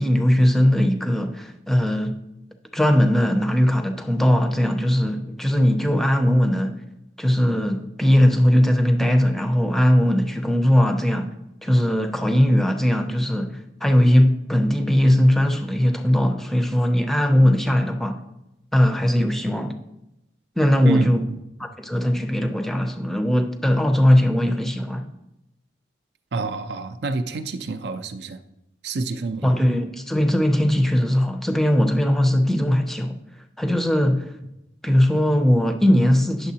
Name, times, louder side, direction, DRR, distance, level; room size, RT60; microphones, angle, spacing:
voice 1, 0.0-2.2 2.7-6.8 7.2-11.3 11.6-18.2 18.7-19.8 20.6-21.2 21.6-25.1 29.4-33.2 33.6-34.3 34.8-36.5, equal, ahead, 6 dB, 0.5 m, -19 dB
voice 2, 20.9-21.4 26.3-28.4 28.8-29.5, right 2 dB, 70° right, 10 dB, 0.5 m, -26 dB
9.2 x 6.7 x 2.8 m, 0.90 s
head